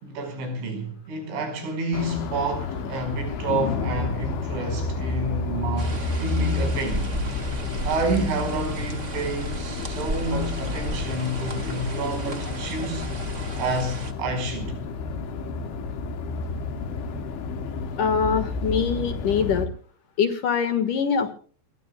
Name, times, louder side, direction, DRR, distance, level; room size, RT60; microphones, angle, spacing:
voice 1, 0.0-7.1 7.8-13.1 13.6-14.8, right 2 dB, 85° right, 7.4 m, -29 dB
sound 1, 1.9-19.7, left 3 dB, 85° left, 4.2 m, -30 dB
sound 2, 5.8-14.1, right 2 dB, 50° right, 0.8 m, -34 dB
voice 2, 18.0-19.7 20.2-21.3, left 6 dB, 60° left, 2.5 m, -23 dB
28.5 x 21.5 x 2.3 m
omnidirectional pair, 5.2 m